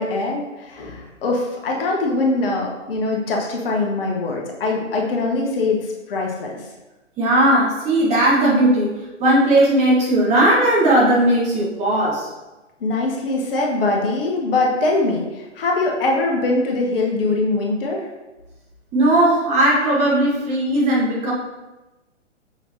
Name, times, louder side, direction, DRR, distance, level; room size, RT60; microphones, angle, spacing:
voice 1, 0.0-6.6 12.8-18.1, left 2 dB, 50° left, -1 dB, 1.2 m, -22 dB
voice 2, 7.2-8.9 9.2-12.3 18.9-21.3, right 1 dB, 20° right, -5 dB, 1.3 m, -17 dB
6.1 x 5.7 x 2.8 m, 1.1 s
figure-of-eight pair, 125°, 37 cm